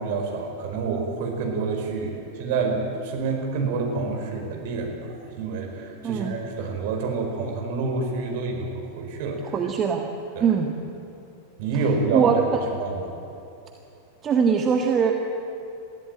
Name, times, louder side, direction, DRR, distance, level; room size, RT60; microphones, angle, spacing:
voice 1, 0.0-9.5 10.3-10.5 11.6-12.4 12.8-13.1, right 4 dB, 50° right, 1 dB, 4.6 m, -28 dB
voice 2, 6.0-6.4 9.5-10.0 10.4-10.7 12.1-12.6 14.2-15.1, right 6 dB, 25° right, 2 dB, 1.6 m, -21 dB
22.5 x 15.0 x 9.0 m, 2.8 s
figure-of-eight pair, 90°, 0 cm